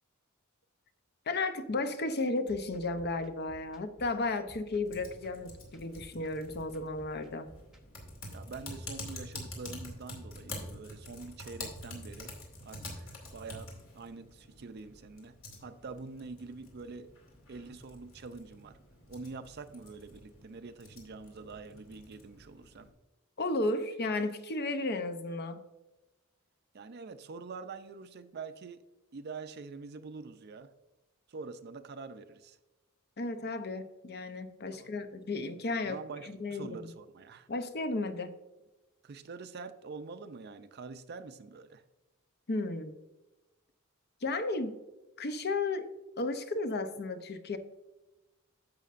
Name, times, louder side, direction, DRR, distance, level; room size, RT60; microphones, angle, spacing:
voice 1, 1.3-7.5 23.4-25.6 33.2-36.9 37.5-38.3 42.5-43.0 44.2-44.8 45.2-47.6, left 2 dB, 50° left, 9 dB, 0.6 m, -34 dB
sound 1, 2.4-8.7, equal, ahead, 0.8 m, -56 dB
Typing, 4.9-22.9, left 2 dB, 65° left, 2.4 m, -47 dB
voice 2, 8.3-12.3 12.6-15.4 15.6-17.1 17.5-18.8 19.1-22.9 26.7-28.8 29.1-30.7 31.3-32.6 34.8-34.9 35.8-37.5 39.0-41.8, right 4 dB, 50° right, 10 dB, 0.5 m, -45 dB
11.0 x 7.4 x 2.5 m, 1.1 s
head